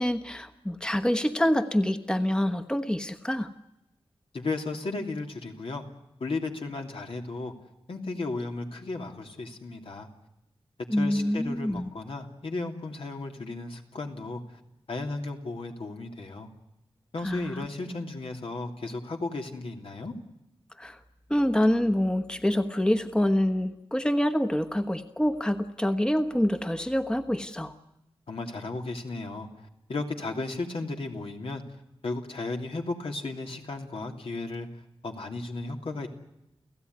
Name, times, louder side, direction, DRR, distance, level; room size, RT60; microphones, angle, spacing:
voice 1, 0.0-3.5 10.9-11.9 17.2-17.7 20.8-21.0 21.3-27.7, equal, 10° left, 8 dB, 1.2 m, -26 dB
voice 2, 4.3-5.8 6.2-7.5 7.9-10.1 11.0-14.6 14.9-16.5 17.1-20.1 28.3-31.6 32.0-34.7 35.0-36.1, left 3 dB, 75° left, 2 dB, 3.0 m, -34 dB
29.5 x 16.0 x 9.6 m, 0.87 s
wide cardioid pair, 115°, 10 cm